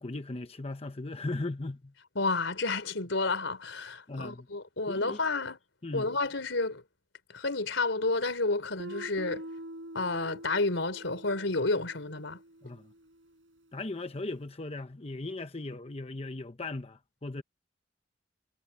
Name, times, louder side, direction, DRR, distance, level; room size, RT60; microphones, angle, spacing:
voice 1, 0.0-1.9 4.1-4.5 4.9-5.2 5.8-6.1 12.6-12.9 13.7-17.4, left 2 dB, 35° left, 0.9 m, -37 dB
voice 2, 2.2-5.6 5.9-6.8 7.3-9.5 9.9-12.4, left 3 dB, 90° left, 4.0 m, -30 dB
Guitar, 8.8-13.5, right 1 dB, 75° right, 8.0 m, -45 dB
head